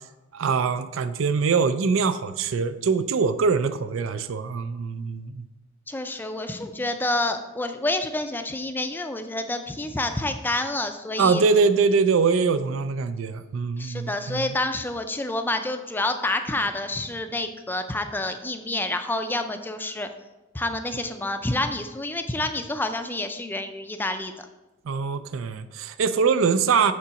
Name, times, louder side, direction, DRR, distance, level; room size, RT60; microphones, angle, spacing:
voice 1, 0.3-5.5 11.2-14.6 24.9-26.9, right 5 dB, 75° right, 11 dB, 0.4 m, -23 dB
voice 2, 5.9-11.4 13.8-20.1 20.5-24.5, left 2 dB, 10° left, 7 dB, 0.4 m, -28 dB
8.5 x 3.9 x 5.6 m, 1.1 s
head